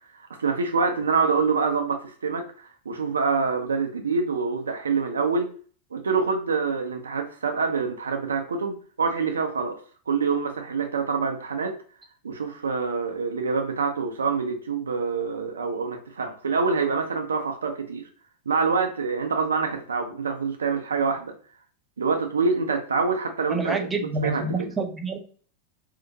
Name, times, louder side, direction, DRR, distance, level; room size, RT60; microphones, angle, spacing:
voice 1, 0.1-5.6 5.9-9.8 10.1-11.7 12.2-18.0 18.5-21.4 22.0-23.9 24.2-24.7, right 4 dB, 70° right, 5 dB, 0.4 m, -26 dB
voice 2, 23.5-25.2, right 3 dB, 15° right, 3 dB, 0.5 m, -28 dB
2.8 x 2.1 x 2.6 m, 0.43 s
figure-of-eight pair, 90°, 0 cm